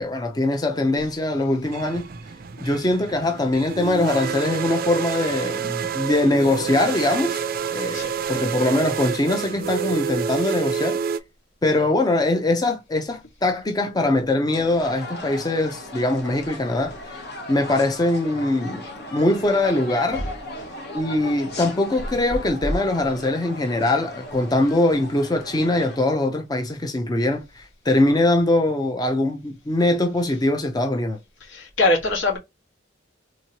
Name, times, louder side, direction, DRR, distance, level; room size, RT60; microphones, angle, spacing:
voice 1, 0.0-2.1 2.6-11.0 11.6-17.2 17.5-20.2 20.9-31.2, left 2 dB, 20° left, 0.5 m, -22 dB
sound 1, 1.6-11.2, right 7 dB, 45° right, 0.4 m, -28 dB
sound 2, 14.5-26.0, left 1 dB, 55° left, 1.0 m, -37 dB
voice 2, 31.5-32.4, left 2 dB, 80° left, 1.5 m, -22 dB
3.6 x 3.0 x 2.8 m
head